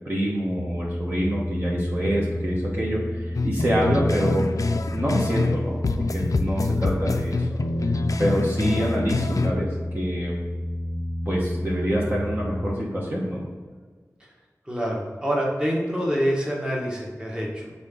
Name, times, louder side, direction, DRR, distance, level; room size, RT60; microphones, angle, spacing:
voice 1, 0.0-4.4 4.9-7.5 8.2-9.7 9.9-10.3 11.2-13.4, equal, 35° right, -5 dB, 1.3 m, -26 dB
sound 1, 0.6-12.8, left 1 dB, 5° left, 0.4 m, -30 dB
sound 2, 3.3-5.6 5.8-9.5, left 3 dB, 70° left, 0.4 m, -26 dB
voice 2, 14.7-17.7, equal, 15° right, -3 dB, 1.5 m, -26 dB
6.7 x 4.0 x 3.9 m, 1.5 s
wide cardioid pair, 70°, 6 cm